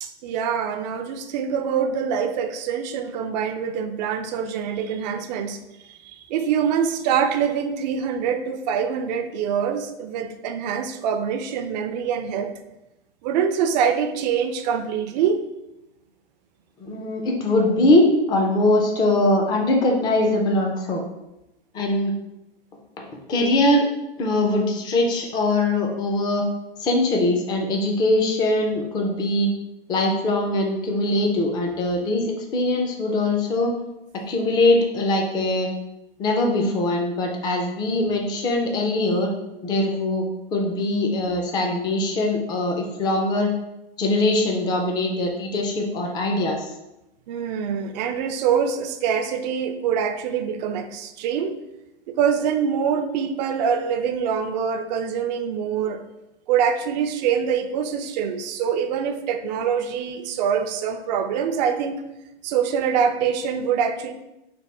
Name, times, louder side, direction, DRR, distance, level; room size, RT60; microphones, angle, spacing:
voice 1, 0.0-5.6 5.9-12.5 13.2-15.4 47.3-51.6 52.1-56.0 56.5-62.0 62.4-64.1, right 7 dB, 45° right, 8 dB, 0.4 m, -24 dB
voice 2, 16.8-21.0 21.7-22.1 23.0-23.9 24.2-26.4 26.8-29.5 29.9-33.7 34.1-35.7 36.2-39.3 39.6-43.5 44.0-46.7, left 2 dB, 15° left, 1 dB, 0.4 m, -22 dB
3.4 x 2.2 x 4.1 m, 0.92 s
hypercardioid pair, 130°, 30 cm